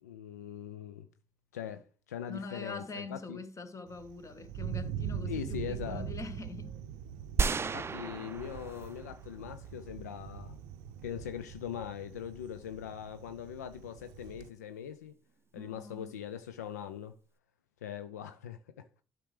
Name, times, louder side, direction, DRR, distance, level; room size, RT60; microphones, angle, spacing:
voice 1, 0.0-1.1 1.5-3.4 5.3-6.1 7.7-10.6 11.0-15.1 15.5-17.2 17.8-19.0, left 9 dB, 85° left, 0.4 m, -41 dB
voice 2, 2.3-6.8 15.5-16.2, left 3 dB, 35° left, 1.2 m, -44 dB
Thunder, 3.9-14.5, right 8 dB, 75° right, 0.5 m, -42 dB
sound 1, 7.4-9.3 9.6-9.7, right 5 dB, 30° right, 0.4 m, -33 dB
11.5 x 6.0 x 3.2 m
figure-of-eight pair, 40°, 9 cm